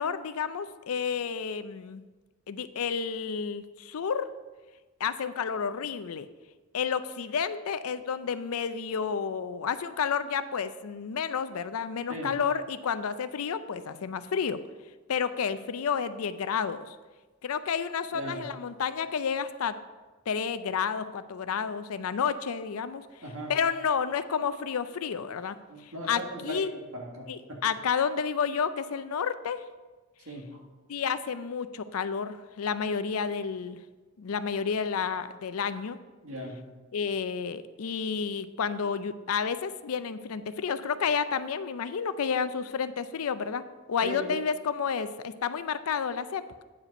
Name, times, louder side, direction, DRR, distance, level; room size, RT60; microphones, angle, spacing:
voice 1, 0.0-2.0 2.5-4.3 5.0-6.3 6.7-14.6 15.1-17.0 17.4-19.8 20.3-23.0 23.5-25.6 25.8-26.7 27.3-29.6 30.9-33.8 34.2-36.0 36.9-43.6 43.9-46.6, left 6 dB, 75° left, 12 dB, 0.4 m, -30 dB
voice 2, 18.1-18.4 23.2-23.6 25.7-26.6 26.9-27.6 30.3-30.6 36.2-36.6 44.0-44.3, right 1 dB, 65° right, -1 dB, 1.8 m, -38 dB
9.4 x 4.9 x 5.3 m, 1.3 s
head